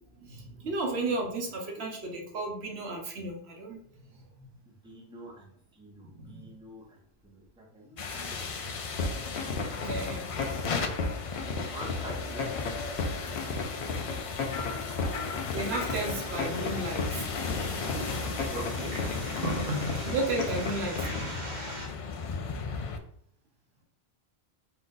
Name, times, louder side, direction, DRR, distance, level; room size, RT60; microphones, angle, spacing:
voice 1, 0.2-3.8 4.1-4.5 6.0-6.5 9.8-10.3 15.5-17.3 20.0-21.4, right 2 dB, 80° right, 0 dB, 1.2 m, -34 dB
voice 2, 4.8-7.0 7.2-8.8 10.7-11.2 11.7-12.8 13.2-13.3 18.5-19.0, right 1 dB, 5° right, -3 dB, 0.9 m, -45 dB
sound 1, 8.0-23.0, left 4 dB, 50° left, 0.4 m, -36 dB
sound 2, 9.0-21.3, left 4 dB, 85° left, 1.0 m, -34 dB
sound 3, 15.8-21.9, right 1 dB, 45° right, 1.0 m, -39 dB
4.3 x 2.5 x 3.8 m, 0.66 s
omnidirectional pair, 1.1 m